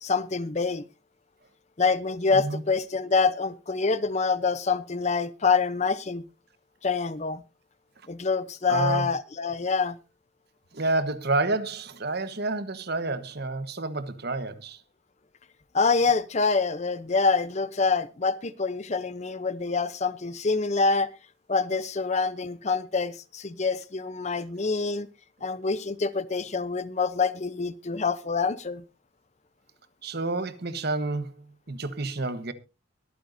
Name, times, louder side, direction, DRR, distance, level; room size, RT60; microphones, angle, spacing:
voice 1, 0.0-0.8 1.8-6.2 6.8-7.4 8.1-10.0 15.7-21.1 21.5-25.1 25.4-28.8, left 4 dB, 35° left, 0.6 m, -26 dB
voice 2, 2.3-2.6 8.7-9.1 10.7-14.8 30.0-32.5, right 3 dB, 50° right, 1.2 m, -29 dB
23.0 x 9.1 x 2.6 m
head